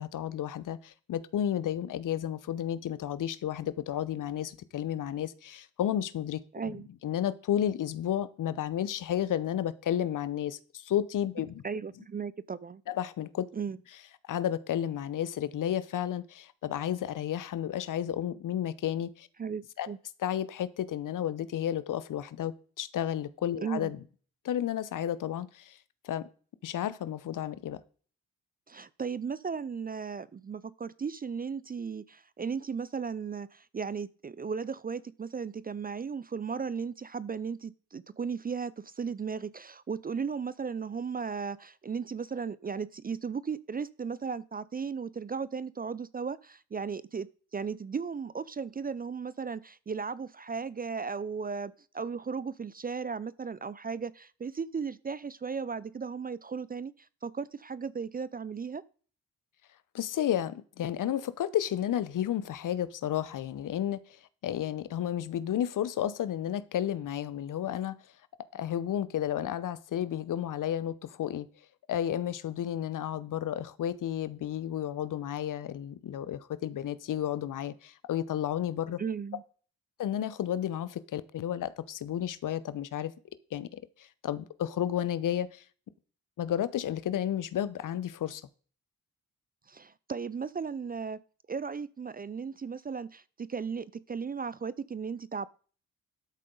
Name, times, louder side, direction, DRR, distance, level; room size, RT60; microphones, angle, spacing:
voice 1, 0.0-6.8 7.0-11.6 12.9-13.5 14.2-19.3 19.8-19.9 20.2-24.0 24.4-25.8 26.0-26.2 26.6-27.8 59.9-68.0 68.5-71.5 71.9-79.0 80.0-83.1 83.5-85.6 86.4-88.4, left 10 dB, 55° left, 0.8 m, -32 dB
voice 2, 6.5-6.9 11.6-12.8 13.5-13.8 19.4-20.0 23.6-23.9 28.7-58.8 79.0-79.4 89.7-91.2 91.5-95.5, right 5 dB, 25° right, 0.5 m, -36 dB
12.5 x 7.4 x 3.9 m
hypercardioid pair, 40°, 38 cm